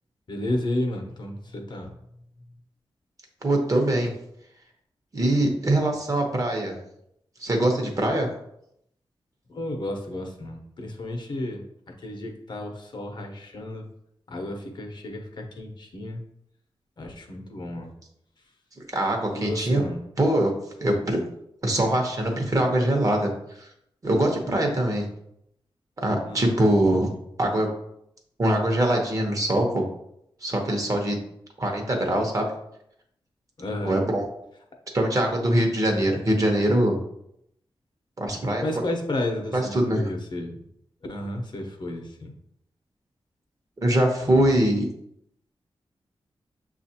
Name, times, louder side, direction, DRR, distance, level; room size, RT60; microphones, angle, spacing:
voice 1, 0.3-2.0 9.5-13.9 14.3-16.2 17.0-17.9 19.3-20.0 26.2-26.5 33.6-34.0 38.6-40.6 41.1-42.3 44.2-44.6, left 1 dB, 55° left, 3 dB, 0.7 m, -32 dB
voice 2, 3.4-4.1 5.1-6.8 7.4-8.3 18.9-19.8 20.2-20.5 20.8-21.2 21.6-23.3 23.6-23.7 24.0-25.1 26.0-27.1 27.4-27.7 28.4-29.8 30.4-31.2 31.6-32.5 33.8-34.2 34.9-37.0 38.2-38.6 39.5-40.0 43.8-44.9, right 1 dB, 40° right, 1 dB, 0.9 m, -23 dB
6.8 x 2.4 x 2.8 m, 0.76 s
wide cardioid pair, 110°, 9 cm